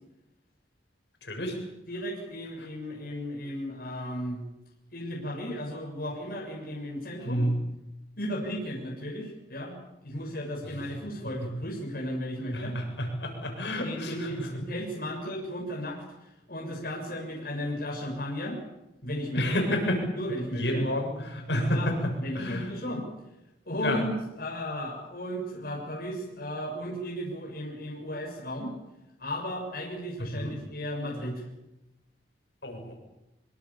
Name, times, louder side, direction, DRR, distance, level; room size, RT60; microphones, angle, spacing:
voice 1, 1.3-1.6 7.2-7.6 12.5-14.3 19.3-20.0 20.6-21.9 22.3-22.7 23.8-24.0 30.3-30.5 32.6-32.9, equal, 75° left, 2 dB, 8.0 m, -29 dB
voice 2, 1.9-4.4 4.9-7.4 8.2-12.8 13.8-18.6 19.0-19.7 20.1-20.9 21.7-23.1 23.6-28.7 29.2-31.4, equal, 55° left, -2 dB, 6.8 m, -35 dB
25.5 x 24.5 x 7.2 m, 0.93 s
head